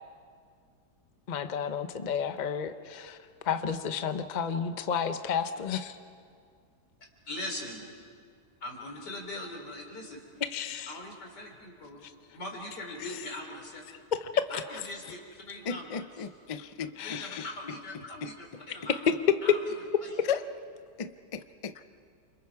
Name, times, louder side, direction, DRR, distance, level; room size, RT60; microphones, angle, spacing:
voice 1, 1.3-3.2 3.5-6.0 10.5-10.9 13.0-13.1 14.2-14.6 17.0-17.5, left 7 dB, 35° left, 9 dB, 0.8 m, -32 dB
voice 2, 7.3-7.9 8.6-10.2 10.9-12.0 12.3-14.0 14.5-16.0 17.0-19.0 19.4-19.6 20.0-20.1, left 1 dB, 90° left, 1 dB, 4.1 m, -41 dB
voice 3, 15.7-17.2 18.2-18.3 20.3-20.4 21.0-21.8, left 7 dB, 55° left, 10 dB, 0.3 m, -35 dB
29.5 x 26.5 x 4.8 m, 2.2 s
omnidirectional pair, 1.8 m